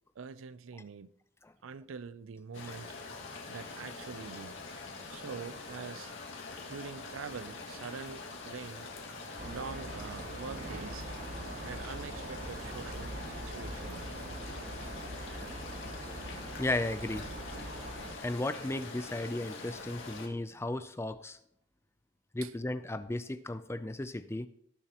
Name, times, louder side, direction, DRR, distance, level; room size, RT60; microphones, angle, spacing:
voice 1, 0.2-1.1 1.6-2.9 3.5-4.6 5.1-6.1 6.7-8.9 9.4-11.1 11.6-14.1 14.8-15.0 22.4-22.5, right 5 dB, 80° right, 0.5 m, -44 dB
sound 1, 2.5-20.3, left 3 dB, 70° left, 2.0 m, -44 dB
sound 2, 9.4-18.2, right 1 dB, 40° right, 1.0 m, -42 dB
voice 2, 16.6-17.3 18.2-21.4 22.3-24.5, left 2 dB, 15° left, 0.4 m, -35 dB
18.5 x 7.1 x 3.0 m
head